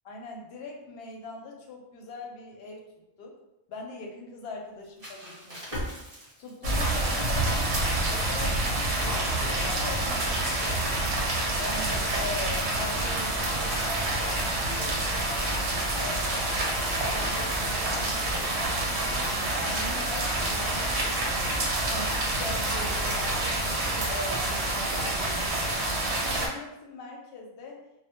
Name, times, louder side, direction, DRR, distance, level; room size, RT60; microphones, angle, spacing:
voice 1, 0.0-2.8 3.2-3.4 3.7-11.1 11.6-15.5 16.0-16.8 17.0-21.6 21.8-25.8 26.2-27.8, left 3 dB, 70° left, 0 dB, 0.8 m, -41 dB
sound 1, 4.6-7.3 8.3-11.7 12.0-12.4 14.2-16.1 18.0-20.7, equal, 40° right, 0.8 m, -45 dB
sound 2, 6.6-26.5, right 2 dB, 85° right, 0.9 m, -28 dB
2.1 x 2.1 x 2.8 m, 0.88 s
omnidirectional pair, 1.1 m